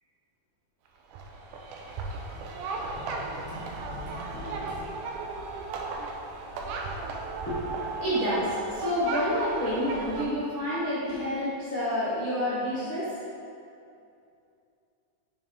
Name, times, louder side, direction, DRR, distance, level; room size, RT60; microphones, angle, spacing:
sound 1, 1.1-10.2, right 3 dB, 85° right, 2.2 m, -35 dB
voice 1, 3.5-4.6 7.4-13.1, equal, 45° left, -12 dB, 0.6 m, -29 dB
6.9 x 5.4 x 3.7 m, 2.5 s
omnidirectional pair, 3.7 m